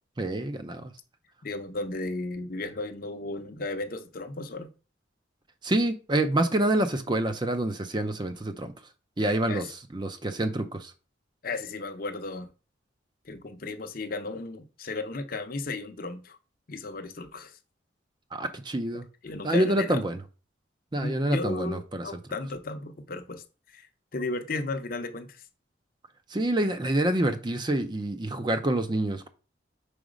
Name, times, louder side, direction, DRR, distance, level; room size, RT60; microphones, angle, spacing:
voice 1, 0.2-0.9 5.6-8.7 9.2-9.7 9.9-10.9 18.3-19.0 19.4-20.2 20.9-22.0 26.3-29.3, right 1 dB, 25° right, 0.5 m, -27 dB
voice 2, 1.4-4.7 9.5-9.7 11.4-12.5 13.2-16.4 16.7-17.6 19.2-20.0 21.0-23.9 24.1-25.4, left 3 dB, 45° left, 0.7 m, -35 dB
4.9 x 4.0 x 5.1 m
head